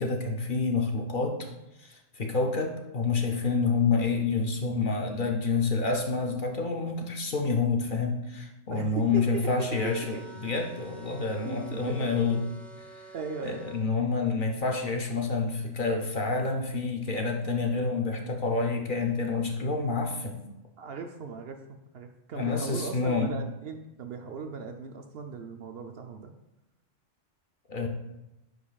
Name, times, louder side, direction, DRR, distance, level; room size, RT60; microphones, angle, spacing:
voice 1, 0.0-1.4 1.8-12.4 12.8-13.1 13.4-20.4 22.3-23.3 27.7-27.9, left 4 dB, 50° left, 2 dB, 0.8 m, -28 dB
voice 2, 8.7-10.2 11.4-12.1 13.1-13.6 19.9-20.0 20.8-26.3, right 5 dB, 65° right, 5 dB, 0.7 m, -38 dB
sound 1, 9.7-13.8, right 1 dB, ahead, 0.5 m, -48 dB
9.7 x 5.2 x 2.3 m, 0.93 s
omnidirectional pair, 1.3 m